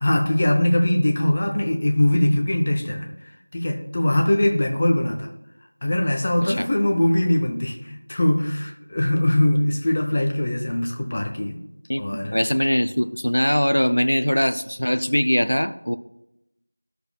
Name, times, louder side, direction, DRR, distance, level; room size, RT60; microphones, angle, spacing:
voice 1, 0.0-3.1 3.5-5.3 5.8-11.6 12.0-12.4, left 1 dB, 15° left, 2 dB, 0.4 m, -21 dB
voice 2, 12.3-16.0, equal, 70° left, 9 dB, 0.5 m, -21 dB
12.5 x 6.6 x 2.3 m, 0.84 s
figure-of-eight pair, 180°, 0 cm